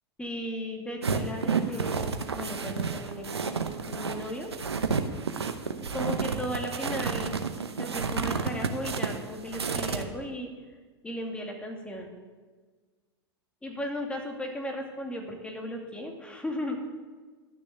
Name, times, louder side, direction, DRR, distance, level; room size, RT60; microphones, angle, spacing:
voice 1, 0.2-4.5 5.8-7.4 7.8-10.5 11.0-12.1 13.6-16.8, left 1 dB, 10° left, 2 dB, 2.3 m, -36 dB
sound 1, 1.0-10.0, right 5 dB, 90° right, 0.9 m, -30 dB
12.5 x 6.4 x 8.3 m, 1.4 s
hypercardioid pair, 95°, 13 cm